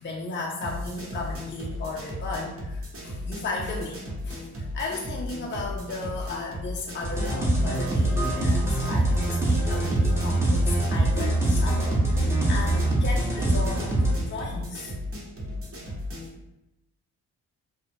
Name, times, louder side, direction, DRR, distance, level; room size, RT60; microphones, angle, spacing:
voice 1, 0.0-14.9, left 3 dB, 30° left, -2 dB, 0.5 m, -35 dB
sound 1, 0.6-16.3, left 1 dB, 35° right, 1.0 m, -36 dB
sound 2, 7.0-14.2, right 1 dB, 5° right, 0.9 m, -24 dB
2.4 x 2.1 x 3.3 m, 0.89 s
supercardioid pair, 50°, 38 cm